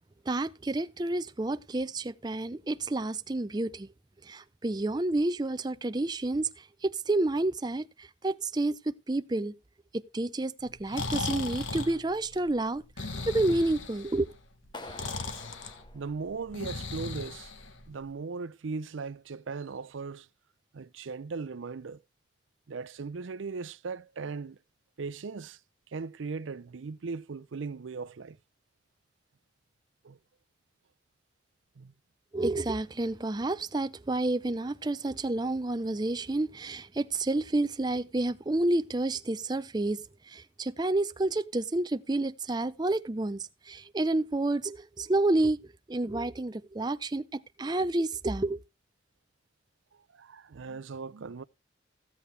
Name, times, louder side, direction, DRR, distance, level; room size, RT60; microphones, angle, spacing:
voice 1, 0.3-3.9 4.2-9.6 9.9-14.3 32.3-40.0 40.3-45.6 45.9-48.6, right 2 dB, 20° right, 0.5 m, -30 dB
Breathing, 10.6-18.1, left 3 dB, 85° left, 1.4 m, -37 dB
Clapping, 14.7-16.8, left 2 dB, 25° left, 0.8 m, -47 dB
voice 2, 15.9-17.5 17.9-20.3 20.7-22.0 22.7-24.6 25.0-25.6 25.9-28.4 30.0-30.2 31.8-31.9 50.1-51.4, right 4 dB, 80° right, 0.5 m, -38 dB
15.5 x 8.3 x 3.3 m
head